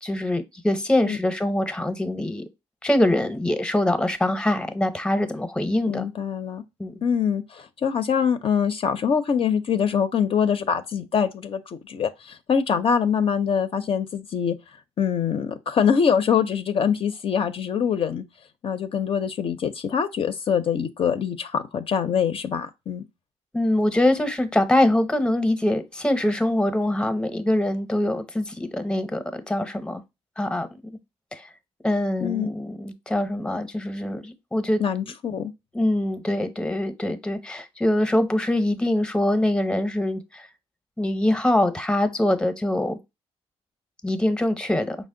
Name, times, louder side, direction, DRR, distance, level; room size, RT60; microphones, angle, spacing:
voice 1, 0.0-2.4 2.8-6.1 6.8-7.0 23.5-30.0 30.4-30.7 31.3-31.4 31.8-34.8 35.7-40.5 41.0-43.0 44.0-45.0, left 1 dB, 5° left, 0.7 m, -23 dB
voice 2, 5.9-6.6 7.0-14.6 15.0-18.2 18.6-23.0 32.2-32.5 34.8-35.5, left 7 dB, 50° left, 0.5 m, -24 dB
5.0 x 2.0 x 3.7 m
cardioid pair, 90°, 12 cm